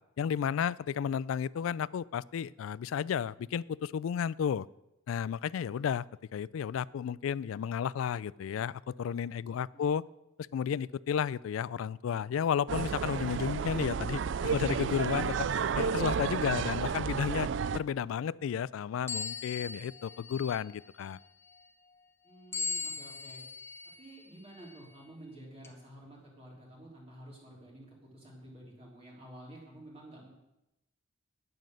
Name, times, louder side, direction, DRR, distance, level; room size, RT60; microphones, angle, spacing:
voice 1, 0.2-4.7 5.1-6.1 6.3-10.0 10.5-15.5 15.8-17.5 17.7-21.2, left 8 dB, 85° left, 21 dB, 0.3 m, -32 dB
voice 2, 9.4-10.0 22.2-23.4 24.0-30.3, right 1 dB, 30° right, -4 dB, 3.3 m, -51 dB
sound 1, 12.7-17.8, right 6 dB, 60° right, 0.4 m, -31 dB
sound 2, 19.1-20.8 22.5-24.0 24.6-24.8 25.6-25.7, left 4 dB, 10° left, 0.9 m, -38 dB
9.6 x 9.2 x 6.4 m, 0.92 s
head